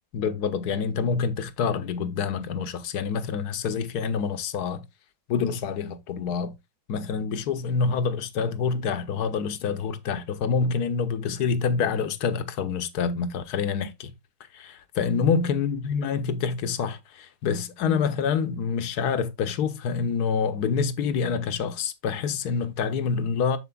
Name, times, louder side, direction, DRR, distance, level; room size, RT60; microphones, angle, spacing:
voice 1, 0.1-4.8 5.3-6.5 6.9-14.1 14.5-23.6, left 6 dB, 65° left, 1.1 m, -27 dB
12.5 x 4.4 x 2.3 m
omnidirectional pair, 2.1 m